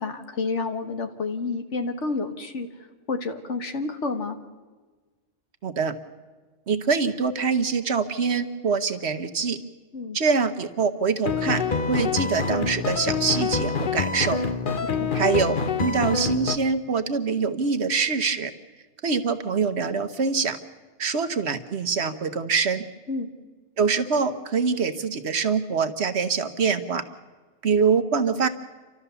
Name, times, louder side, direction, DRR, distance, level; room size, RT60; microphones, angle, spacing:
voice 1, 0.0-2.7 3.1-4.4 9.9-10.2 15.0-15.1 23.1-23.3, left 3 dB, 65° left, 7 dB, 1.7 m, -29 dB
voice 2, 5.6-5.9 6.7-9.6 10.1-14.4 15.1-18.5 19.0-20.6 21.0-22.8 23.8-27.0 27.6-28.5, right 5 dB, 60° right, 10 dB, 1.2 m, -24 dB
sound 1, 11.3-16.6, left 5 dB, 45° left, 0.9 m, -26 dB
29.5 x 13.0 x 6.9 m, 1.3 s
omnidirectional pair, 1.3 m